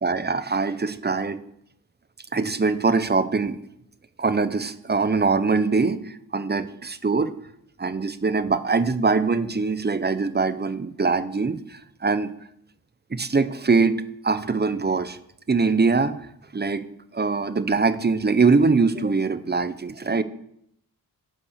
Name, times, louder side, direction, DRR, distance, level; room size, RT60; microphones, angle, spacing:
voice 1, 0.0-1.4 2.3-3.6 4.2-7.3 7.8-12.3 13.1-15.2 15.5-16.1 16.5-16.8 17.1-20.2, right 4 dB, 25° right, 13 dB, 0.7 m, -23 dB
8.6 x 5.3 x 6.5 m, 0.72 s
cardioid pair, 45°, 40 cm